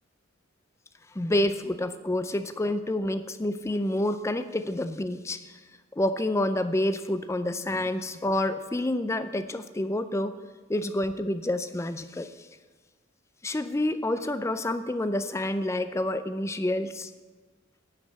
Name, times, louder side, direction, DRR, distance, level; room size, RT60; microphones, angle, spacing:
voice 1, 1.1-5.6 6.0-10.4 10.7-12.5 13.4-17.1, left 1 dB, 15° left, 11 dB, 0.4 m, -28 dB
9.2 x 5.5 x 8.1 m, 1.3 s
head